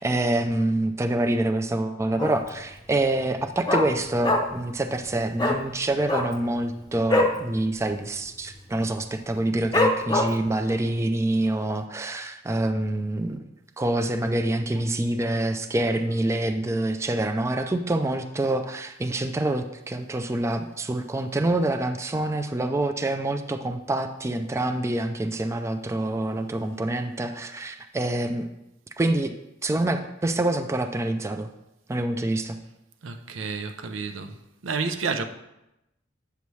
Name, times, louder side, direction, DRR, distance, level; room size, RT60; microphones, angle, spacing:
voice 1, 0.0-13.5 13.8-28.5 29.0-29.3 29.6-31.5 31.9-32.6, right 1 dB, 15° right, 0.3 m, -26 dB
Dog, 2.2-2.6 2.9-3.0 3.3-4.7 5.0-5.1 5.4-5.6 6.0-7.4 7.8-7.9 8.2-8.6 9.0-9.1 9.7-10.5 11.0-11.1, left 2 dB, 20° left, 0.7 m, -23 dB
voice 2, 33.0-34.4 34.6-35.2, right 4 dB, 90° right, 0.6 m, -30 dB
8.1 x 6.9 x 3.1 m
head